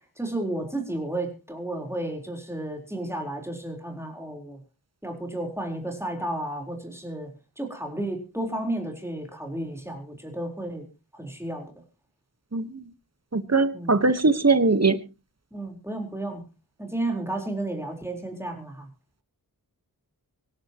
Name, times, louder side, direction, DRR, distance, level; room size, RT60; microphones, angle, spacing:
voice 1, 0.2-4.6 5.0-7.3 7.6-10.9 11.1-11.7 13.7-14.0 15.5-16.4 16.8-18.9, right 1 dB, 5° right, 2 dB, 4.2 m, -32 dB
voice 2, 13.3-15.0, right 3 dB, 40° right, 12 dB, 1.4 m, -20 dB
25.0 x 10.5 x 3.0 m, 0.31 s
wide cardioid pair, 55°, 38 cm